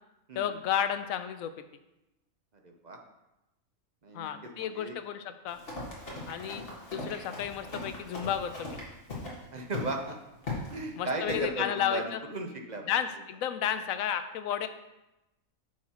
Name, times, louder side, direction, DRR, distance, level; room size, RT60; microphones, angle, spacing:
voice 1, 0.4-1.5 4.1-5.6 6.3-6.6 6.9-8.8 11.0-12.2 12.9-14.7, left 9 dB, 80° left, 10 dB, 1.0 m, -32 dB
voice 2, 2.6-3.0 4.0-4.9 6.1-6.2 9.5-10.2 10.7-12.8, right 2 dB, 40° right, 2 dB, 0.8 m, -36 dB
Run, 5.5-9.4 9.7-9.9 10.4-10.7 11.3-11.4, left 2 dB, 45° left, 1.9 m, -39 dB
9.5 x 6.2 x 3.0 m, 0.95 s
omnidirectional pair, 1.4 m